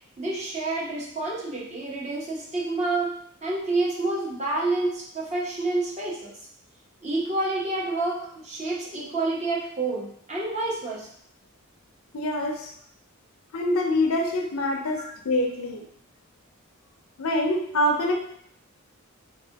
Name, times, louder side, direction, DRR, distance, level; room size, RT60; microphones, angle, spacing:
voice 1, 0.2-3.1 3.4-6.3 7.0-11.1, right 2 dB, 35° right, -4 dB, 0.9 m, -28 dB
voice 2, 12.1-12.7 13.5-15.8 17.2-18.1, left 1 dB, 80° left, 2 dB, 0.5 m, -25 dB
3.6 x 2.9 x 2.8 m, 0.67 s
head